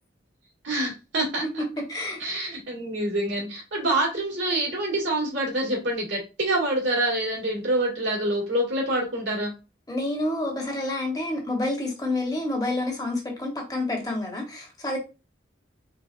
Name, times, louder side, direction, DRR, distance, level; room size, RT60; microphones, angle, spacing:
voice 1, 0.6-1.6 2.2-9.5, right 1 dB, 80° right, 2.0 m, -26 dB
voice 2, 1.6-2.2 9.9-15.0, left 2 dB, 20° left, 1.0 m, -28 dB
3.9 x 3.6 x 2.5 m
head